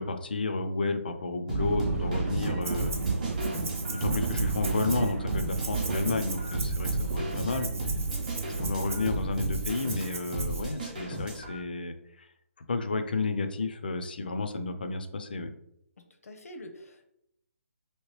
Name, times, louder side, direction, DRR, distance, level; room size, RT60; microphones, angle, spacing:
voice 1, 0.0-2.9 3.9-7.7 8.6-11.9 12.7-15.5, left 3 dB, 40° left, 8 dB, 0.3 m, -31 dB
sound 1, 1.5-11.6, right 1 dB, 30° right, 0.8 m, -34 dB
sound 2, 1.6-9.2, right 4 dB, 85° right, 0.3 m, -33 dB
Rattle (instrument), 2.6-3.1 3.4-10.6, right 3 dB, 65° right, 0.8 m, -40 dB
voice 2, 8.1-8.6 16.0-17.1, left 1 dB, 85° left, 5 dB, 0.6 m, -47 dB
3.0 x 2.9 x 3.0 m, 0.74 s
hypercardioid pair, 180°, 8 cm